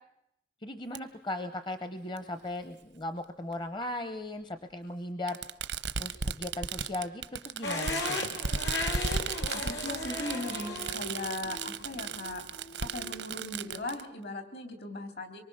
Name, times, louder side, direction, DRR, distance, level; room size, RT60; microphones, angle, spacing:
voice 1, 0.6-5.4 5.9-8.2, left 2 dB, 25° left, 10 dB, 0.8 m, -37 dB
Fireworks, 0.9-1.0 2.2-2.3 3.5-3.6 5.3-14.0, right 6 dB, 90° right, 0.9 m, -35 dB
sound 1, 7.6-13.7, left 2 dB, 80° left, 3.2 m, -37 dB
voice 2, 9.5-12.4 12.8-15.4, left 2 dB, 65° left, 6 dB, 3.5 m, -38 dB
25.0 x 23.0 x 6.4 m, 0.81 s
head